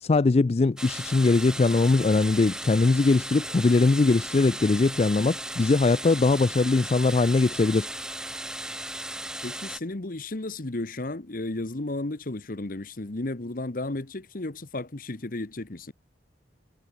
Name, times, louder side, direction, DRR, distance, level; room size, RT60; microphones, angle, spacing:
voice 1, 0.0-7.9, left 3 dB, 35° left, 0.4 m, -21 dB
sound 1, 0.8-9.8, right 1 dB, 5° right, 0.8 m, -36 dB
voice 2, 9.4-15.9, left 2 dB, 50° left, 1.2 m, -33 dB
head